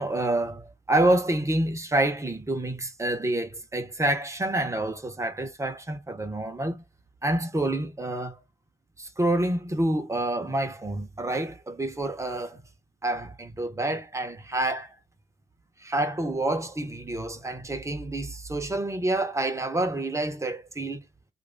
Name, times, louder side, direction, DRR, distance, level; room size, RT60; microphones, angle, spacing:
voice 1, 0.0-6.8 7.2-8.4 9.0-12.6 13.0-14.9 15.8-21.0, right 1 dB, 15° right, 1.1 m, -28 dB
2.9 x 2.6 x 3.6 m
cardioid pair, 90°, 20 cm